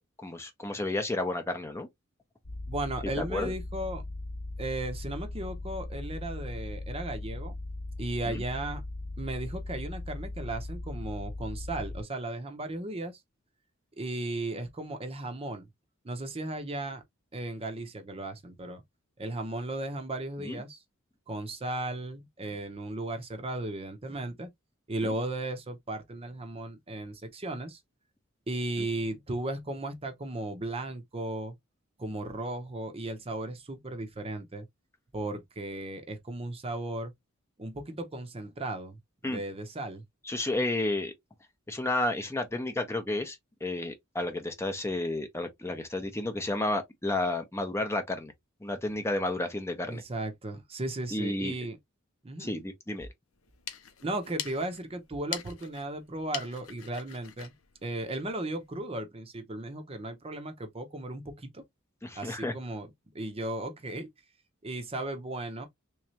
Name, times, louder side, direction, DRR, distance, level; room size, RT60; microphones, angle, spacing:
voice 1, 0.2-1.9 3.0-3.5 8.3-8.4 20.4-20.6 25.0-25.1 28.8-28.9 39.2-39.4 40.2-41.1 41.7-48.3 48.6-50.0 51.1-51.5 52.4-53.1 62.0-62.5, left 2 dB, 15° left, 0.6 m, -31 dB
sound 1, 2.4-12.0, left 2 dB, 45° left, 0.9 m, -38 dB
voice 2, 2.7-4.0 4.6-7.5 8.0-8.8 9.2-13.2 14.0-15.7 16.0-17.0 17.3-18.8 19.2-20.8 21.3-24.5 24.9-27.8 28.5-31.5 32.0-34.7 35.1-37.1 37.6-40.0 49.9-51.8 52.2-52.5 54.0-57.5 57.8-61.6 62.1-62.9 63.1-64.1 64.6-65.7, right 2 dB, 30° right, 0.7 m, -36 dB
sound 2, 53.4-58.7, left 9 dB, 90° left, 0.8 m, -43 dB
3.4 x 3.1 x 2.7 m
head